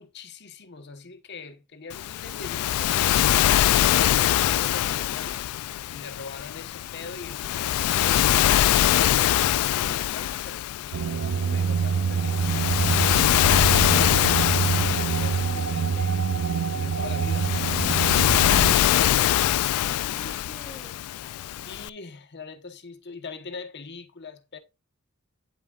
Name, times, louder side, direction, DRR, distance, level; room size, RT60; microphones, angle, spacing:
voice 1, 0.0-3.0 3.7-5.5 5.9-12.4 13.3-16.2 16.7-18.6 21.6-24.6, left 4 dB, 50° left, 1.1 m, -42 dB
Waves surf, 1.9-21.9, left 12 dB, 90° left, 0.3 m, -23 dB
sound 1, 10.9-18.7, right 6 dB, 85° right, 0.5 m, -26 dB
voice 2, 19.9-21.1, right 1 dB, 10° left, 3.5 m, -49 dB
9.2 x 8.0 x 2.4 m
head